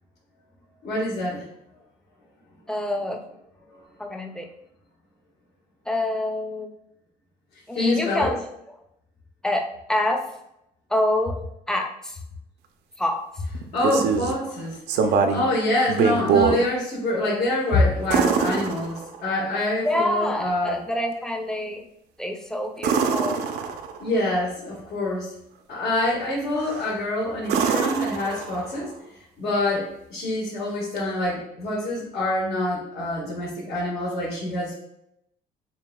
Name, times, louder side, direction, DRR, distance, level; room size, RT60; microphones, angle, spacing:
voice 1, 0.8-1.4 7.7-8.3 13.7-14.8 15.0-20.8 24.0-25.3 25.7-28.9 29.4-34.8, left 1 dB, 70° left, -8 dB, 1.6 m, -25 dB
voice 2, 2.7-3.2 4.0-4.5 5.9-6.7 7.7-8.5 9.4-10.2 10.9-11.4 11.7-12.2 13.0-13.2 14.4-14.5 19.8-21.8 22.2-23.4, left 1 dB, 5° left, 3 dB, 0.5 m, -26 dB
sound 1, 13.5-14.4 14.9-15.5 15.9-16.6 18.1-19.4 22.8-24.1 26.6-26.9 27.4-28.8 31.0-31.1, right 6 dB, 80° right, 0.5 m, -23 dB
6.8 x 2.7 x 2.2 m, 0.80 s
cardioid pair, 110°, 17 cm